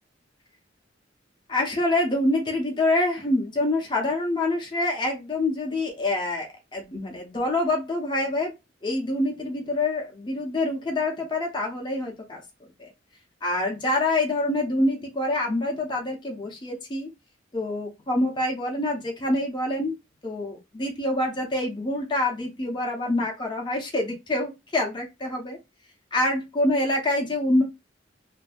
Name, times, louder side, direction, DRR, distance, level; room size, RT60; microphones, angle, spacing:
voice 1, 1.5-8.5 8.8-12.4 12.8-12.9 13.4-17.1 17.5-20.0 20.2-25.6 26.1-27.6, left 2 dB, 25° left, 0 dB, 0.7 m, -26 dB
2.6 x 2.6 x 2.3 m, 0.22 s
head